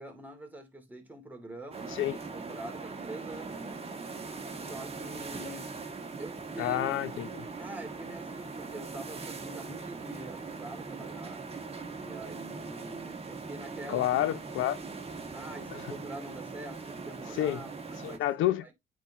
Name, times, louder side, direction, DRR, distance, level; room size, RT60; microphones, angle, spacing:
voice 1, 0.0-3.8 4.6-5.7 6.2-6.9 7.6-11.5 12.0-14.1 14.5-14.6 15.3-18.2 18.6-18.7, right 2 dB, 10° right, 2.9 m, -45 dB
sound 1, 1.7-18.2, right 4 dB, 30° right, 1.9 m, -41 dB
voice 2, 6.6-7.5 13.9-14.8 15.7-15.8 17.4-17.6 18.0-18.6, left 13 dB, 90° left, 0.8 m, -29 dB
8.7 x 4.2 x 3.0 m
cardioid pair, 90°, 20 cm